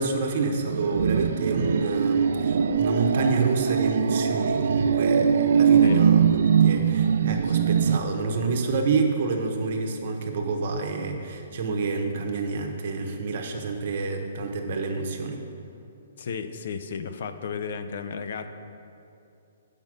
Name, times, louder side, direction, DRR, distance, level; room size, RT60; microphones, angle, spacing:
voice 1, 0.0-6.3 6.6-15.4, right 4 dB, 50° right, 3 dB, 1.0 m, -28 dB
sound 1, 0.7-8.0, right 7 dB, 70° right, 0.3 m, -21 dB
voice 2, 16.2-18.5, left 6 dB, 60° left, 9 dB, 0.5 m, -34 dB
7.3 x 5.1 x 6.2 m, 2.6 s
hypercardioid pair, 155°, 0 cm